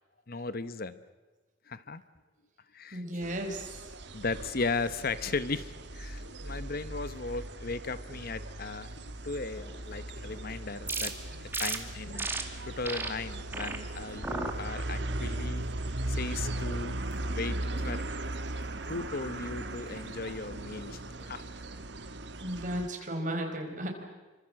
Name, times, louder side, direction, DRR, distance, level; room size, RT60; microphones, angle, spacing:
voice 1, 0.3-1.0 1.7-2.0 2.7-3.0 4.1-12.3 12.7-15.6 16.1-17.6 17.8-18.1 18.9-21.0 21.3-21.5, left 3 dB, 50° left, 14 dB, 1.0 m, -36 dB
voice 2, 2.9-3.9 22.4-23.9, right 1 dB, 45° right, 3 dB, 4.8 m, -34 dB
sound 1, 3.2-22.9, right 1 dB, 65° right, 1.6 m, -38 dB
sound 2, 8.8-21.9, equal, 35° left, 6.9 m, -59 dB
sound 3, 10.9-11.1 11.5-11.8 12.2-12.4 12.8-13.1 13.5-13.8 14.2-14.5 15.0-15.4, right 3 dB, 10° right, 2.1 m, -34 dB
28.0 x 25.0 x 7.7 m, 1.2 s
head